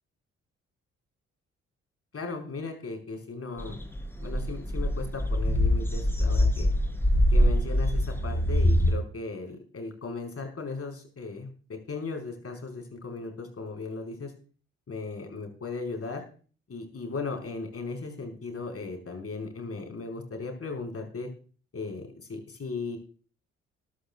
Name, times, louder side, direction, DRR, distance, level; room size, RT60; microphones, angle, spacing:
voice 1, 2.1-3.8 4.2-6.7 7.3-14.3 14.9-16.2 16.7-21.3 21.7-23.0, left 4 dB, 45° left, 3 dB, 4.9 m, -37 dB
sound 1, 3.6-8.9, left 1 dB, 5° left, 3.5 m, -24 dB
20.5 x 11.5 x 2.4 m, 0.40 s
hypercardioid pair, 40°, 32 cm